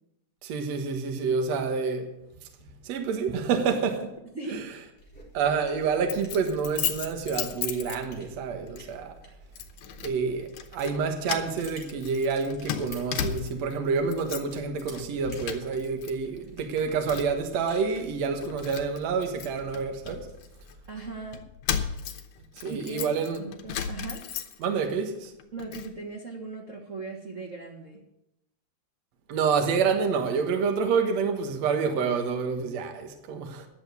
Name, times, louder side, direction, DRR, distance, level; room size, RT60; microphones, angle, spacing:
voice 1, 0.4-2.1 2.8-4.1 4.5-4.6 5.3-9.2 10.0-20.3 22.6-23.4 24.6-25.3 29.3-33.7, right 5 dB, 60° right, 4 dB, 2.3 m, -28 dB
sound 1, 5.0-21.4, right 2 dB, 5° left, 4.1 m, -51 dB
Keys jangling, 6.1-8.4 8.8-9.0 9.6-10.2 10.5-11.0 11.2-13.7 14.0-14.6 14.9-16.1 16.4-17.5 18.0-18.1 18.4-20.7 21.3-24.9 25.2-25.9, left 8 dB, 75° left, 2.4 m, -35 dB
voice 2, 20.9-21.4 22.7-24.2 25.5-28.0, right 3 dB, 80° right, -2 dB, 0.7 m, -38 dB
11.0 x 7.5 x 8.4 m, 0.86 s
omnidirectional pair, 4.0 m